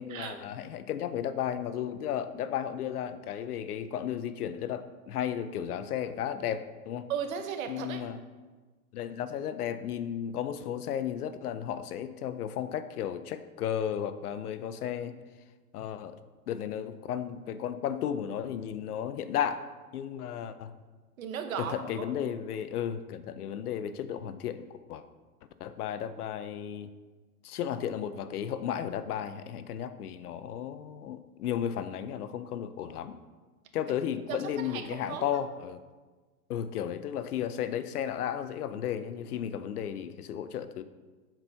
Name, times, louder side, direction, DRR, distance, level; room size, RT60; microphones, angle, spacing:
voice 1, 0.0-7.1 7.7-8.2 8.9-15.2 15.7-16.2 16.5-20.7 21.6-25.0 25.6-26.9 27.4-33.2 33.7-35.8 36.5-40.8, left 9 dB, 75° left, 12 dB, 0.7 m, -34 dB
voice 2, 7.1-8.0 21.2-22.1 34.3-35.4, right 7 dB, 60° right, 6 dB, 1.1 m, -36 dB
7.8 x 4.6 x 5.4 m, 1.3 s
hypercardioid pair, 160°, 46 cm